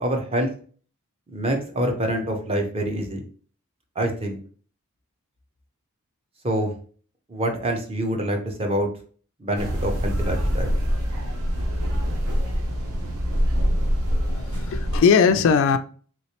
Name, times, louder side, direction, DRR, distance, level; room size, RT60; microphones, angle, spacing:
voice 1, 0.0-0.5 1.3-3.2 4.0-4.4 6.4-6.7 7.3-8.9 9.4-10.7, right 1 dB, 25° right, 0.6 m, -26 dB
sound 1, 9.6-15.0, equal, 75° right, 0.7 m, -24 dB
voice 2, 14.3-15.8, left 6 dB, 60° left, 0.3 m, -19 dB
3.2 x 3.1 x 2.8 m
head